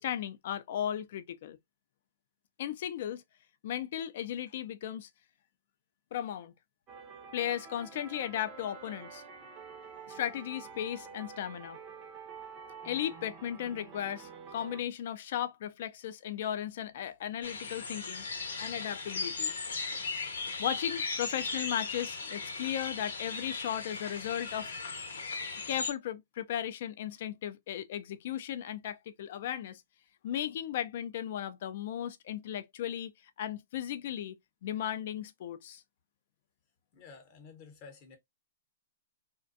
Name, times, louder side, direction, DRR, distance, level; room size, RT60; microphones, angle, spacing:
voice 1, 0.0-1.6 2.6-3.2 3.6-5.1 6.1-6.5 7.3-9.2 10.1-11.8 12.8-18.2 18.6-19.5 20.6-24.7 25.7-29.8 30.2-33.1 33.4-34.4 34.6-35.8, left 10 dB, 55° left, 0.3 m, -36 dB
sound 1, 6.9-14.8, right 6 dB, 25° right, 0.5 m, -48 dB
sound 2, 17.4-25.9, left 4 dB, 90° left, 0.8 m, -37 dB
voice 2, 36.9-38.2, left 5 dB, 35° left, 0.8 m, -51 dB
2.5 x 2.1 x 2.5 m
hypercardioid pair, 155°, 0 cm